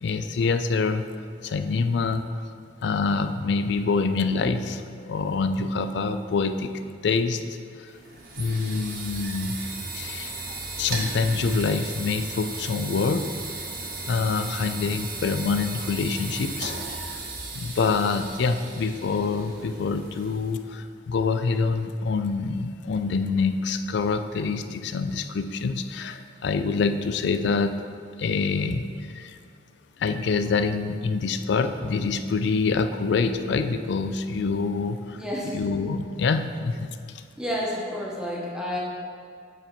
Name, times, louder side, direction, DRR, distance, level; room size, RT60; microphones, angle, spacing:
voice 1, 0.0-1.0 1.4-2.3 2.8-6.7 7.0-7.4 7.8-7.9 8.4-9.6 9.9-13.3 14.1-16.7 17.5-27.8 28.2-29.4 30.0-35.2 35.5-37.0, left 4 dB, 65° left, 9 dB, 0.4 m, -26 dB
sound 1, 7.9-20.7, right 3 dB, 55° right, 1.1 m, -36 dB
voice 2, 35.1-35.6 37.4-38.8, equal, 5° right, -4 dB, 1.1 m, -30 dB
8.0 x 4.3 x 4.5 m, 2.3 s
head